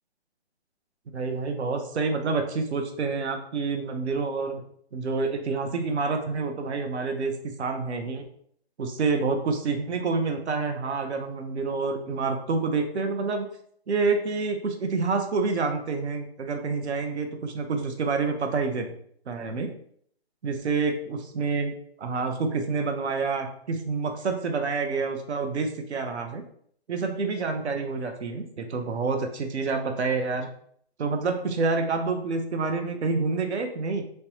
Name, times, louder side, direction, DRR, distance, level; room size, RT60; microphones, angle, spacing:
voice 1, 1.1-4.5 4.9-7.3 7.6-8.3 8.8-13.5 13.9-18.9 19.3-19.7 20.4-26.4 26.9-30.5 31.0-34.0, right 4 dB, 85° right, 5 dB, 0.6 m, -28 dB
3.2 x 2.1 x 2.8 m, 0.65 s
hypercardioid pair, 175°, 33 cm